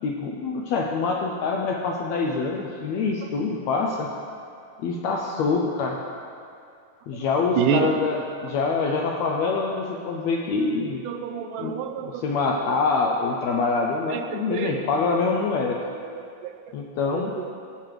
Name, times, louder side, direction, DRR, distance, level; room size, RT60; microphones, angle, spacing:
voice 1, 0.0-4.1 4.8-6.0 7.1-11.0 11.6-11.7 12.0-15.9 16.7-17.3, left 4 dB, 85° left, 0 dB, 1.6 m, -25 dB
voice 2, 7.6-7.9 11.1-12.2 14.1-14.8 15.8-15.9 16.4-16.5 17.1-17.5, right 8 dB, 85° right, 7 dB, 2.1 m, -27 dB
15.5 x 7.5 x 3.2 m, 2.4 s
omnidirectional pair, 3.7 m